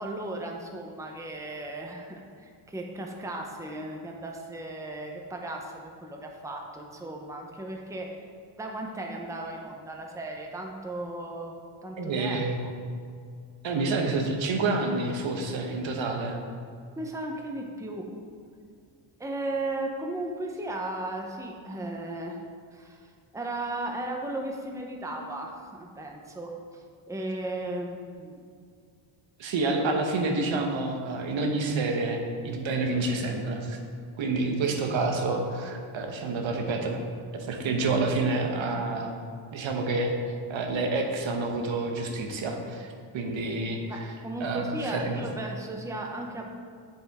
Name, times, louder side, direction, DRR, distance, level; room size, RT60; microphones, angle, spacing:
voice 1, 0.0-8.1 8.6-11.6 11.8-12.7 17.0-18.1 19.2-22.4 22.7-23.1 23.3-28.4 43.9-46.5, right 2 dB, 5° right, 1 dB, 0.8 m, -36 dB
voice 2, 12.0-12.6 13.6-16.4 29.4-33.8 34.2-37.0 37.3-39.2 39.5-40.1 40.5-44.1 44.4-45.2, right 3 dB, 70° right, 3 dB, 1.1 m, -28 dB
7.9 x 7.6 x 3.6 m, 2.2 s
cardioid pair, 120°, 47 cm